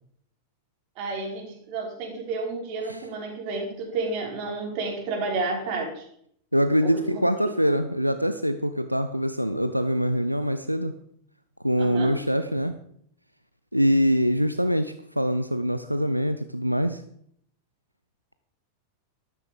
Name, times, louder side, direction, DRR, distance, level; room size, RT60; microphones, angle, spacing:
voice 1, 1.0-6.1 6.8-7.4 11.8-12.2, right 3 dB, 45° right, 1 dB, 5.0 m, -31 dB
voice 2, 6.5-10.9 11.6-12.7 13.7-17.0, equal, 90° right, 10 dB, 0.7 m, -24 dB
13.0 x 13.0 x 5.2 m, 0.66 s
figure-of-eight pair, 90°, 0 cm